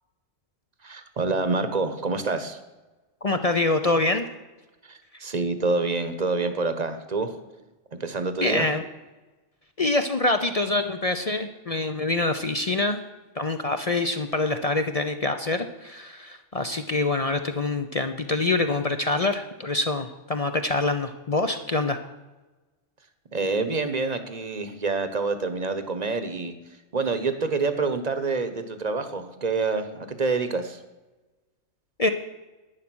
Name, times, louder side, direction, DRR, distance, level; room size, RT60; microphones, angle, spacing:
voice 1, 0.8-2.6 4.8-7.3 8.0-8.7 23.3-26.5 26.9-30.8, right 3 dB, 35° right, 10 dB, 1.0 m, -27 dB
voice 2, 3.2-4.3 8.4-8.8 9.8-13.0 13.4-22.0 32.0-32.1, left 2 dB, 40° left, 7 dB, 0.6 m, -25 dB
11.0 x 9.8 x 6.2 m, 1.1 s
omnidirectional pair, 1.3 m